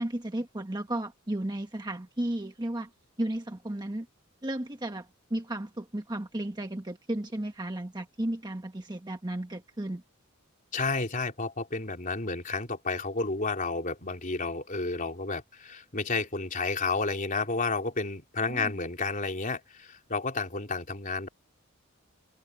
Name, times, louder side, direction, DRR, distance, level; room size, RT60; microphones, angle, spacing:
voice 1, 0.0-2.9 3.2-4.1 4.4-10.0 18.5-18.7, right 1 dB, 20° right, 1.3 m, -34 dB
voice 2, 10.7-21.3, left 3 dB, 40° left, 3.8 m, -31 dB
head